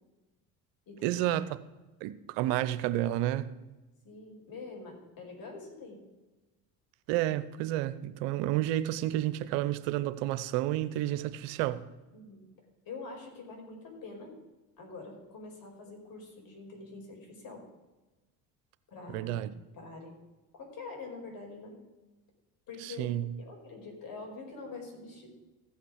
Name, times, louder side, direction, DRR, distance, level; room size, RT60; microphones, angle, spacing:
voice 1, 1.0-1.4 2.0-3.5 7.1-11.9 19.1-19.5 22.8-23.3, right 14 dB, 80° right, 0.8 m, -30 dB
voice 2, 4.0-6.0 12.1-14.3 14.8-17.7 18.9-19.5 19.7-20.1 20.5-21.7 22.7-25.3, left 3 dB, 55° left, 5.2 m, -45 dB
15.5 x 5.9 x 6.4 m
supercardioid pair, 70°, 41 cm